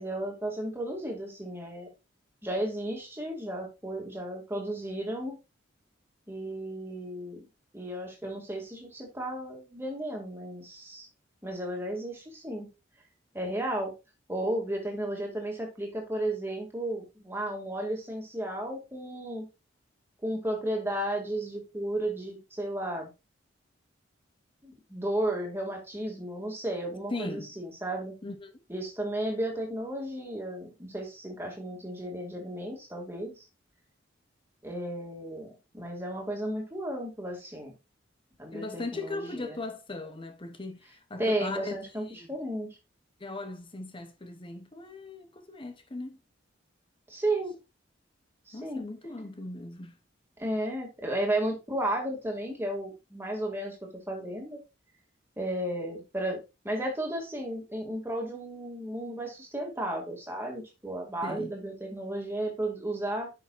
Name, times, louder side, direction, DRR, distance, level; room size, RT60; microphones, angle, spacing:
voice 1, 0.0-1.9 2.4-5.4 6.3-7.5 7.7-11.1 11.4-12.7 13.3-13.9 14.3-19.5 20.2-23.1 24.6-28.1 28.7-33.4 34.6-37.7 38.4-39.6 41.2-42.7 47.1-47.5 48.5-48.9 50.4-53.8 54.1-54.6 55.4-56.4 56.6-63.3, right 1 dB, 10° right, 2.4 m, -33 dB
voice 2, 27.1-27.5 28.2-28.5 38.5-42.3 43.2-46.2 48.5-50.0 61.2-61.5, left 2 dB, 25° left, 0.8 m, -38 dB
10.5 x 5.9 x 2.6 m
head